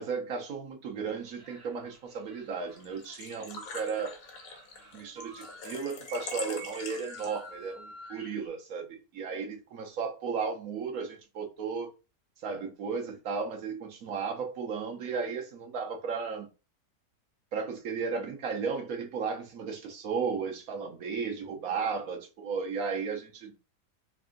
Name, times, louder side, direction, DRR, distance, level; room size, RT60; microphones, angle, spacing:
voice 1, 0.0-4.2 4.9-11.9 12.4-16.5 17.5-23.6, right 5 dB, 65° right, 1.1 m, -34 dB
sound 1, 1.2-8.5, right 2 dB, 45° right, 1.2 m, -50 dB
Engine / Trickle dribble / Fill (with liquid), 2.8-7.6, left 4 dB, 60° left, 1.2 m, -44 dB
3.4 x 2.6 x 3.7 m
omnidirectional pair, 1.7 m